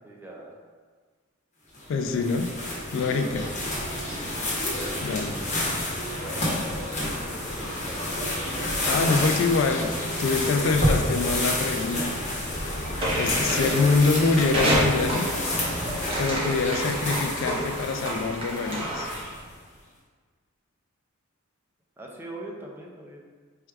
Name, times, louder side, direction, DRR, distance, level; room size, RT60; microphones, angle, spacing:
voice 1, 0.0-0.6 3.1-3.5 4.1-4.8 6.2-6.6 7.2-8.0 13.3-13.7 14.0-14.3 22.0-23.2, right 1 dB, 10° right, -2 dB, 0.4 m, -41 dB
sound 1, 1.7-19.5, left 1 dB, 35° left, 1.0 m, -29 dB
voice 2, 1.9-2.5 2.9-3.5 5.0-5.4 8.9-12.3 13.1-15.4 16.2-19.1, left 4 dB, 65° left, 6 dB, 0.3 m, -25 dB
sound 2, 13.0-19.3, right 1 dB, 30° right, 0.9 m, -29 dB
4.6 x 2.3 x 3.4 m, 1.5 s
head